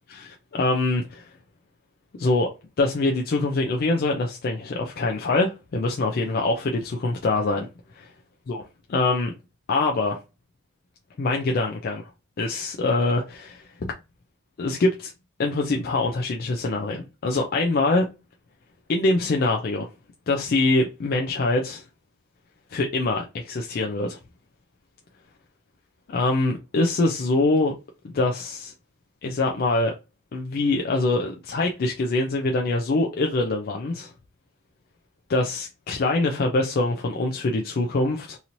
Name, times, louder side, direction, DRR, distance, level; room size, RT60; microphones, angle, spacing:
voice 1, 0.1-1.2 2.2-2.5 2.8-7.7 7.9-8.1 8.5-8.6 8.9-9.3 9.7-10.2 11.2-12.1 12.4-13.9 14.6-15.1 15.4-18.1 18.9-19.9 20.3-21.8 22.7-24.2 26.1-27.7 28.0-28.7 29.2-29.9 30.3-34.1 35.3-38.4, left 2 dB, 45° left, 0.3 m, -24 dB
2.9 x 2.7 x 2.6 m
head